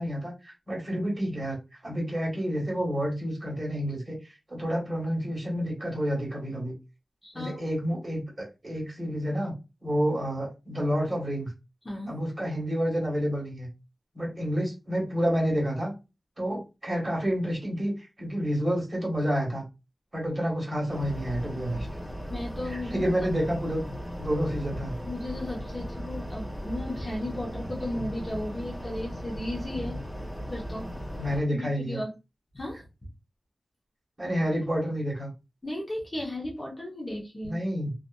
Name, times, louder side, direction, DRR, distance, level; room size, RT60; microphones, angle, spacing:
voice 1, 0.0-1.6 1.8-6.7 7.3-9.5 9.8-11.5 12.1-13.7 14.1-15.9 16.4-19.6 20.1-21.9 22.7-23.8 24.2-25.0 31.2-32.0 34.2-35.3 37.4-37.9, equal, 25° right, -2 dB, 1.4 m, -29 dB
voice 2, 7.2-7.6 11.8-12.2 22.3-23.1 25.0-30.0 30.5-30.9 31.5-32.1 32.5-32.8 35.6-37.6, left 1 dB, 30° left, -3 dB, 0.9 m, -35 dB
sound 1, 20.9-31.4, equal, 10° left, 1.2 m, -37 dB
2.6 x 2.5 x 2.2 m, 0.27 s
wide cardioid pair, 95°, 0 cm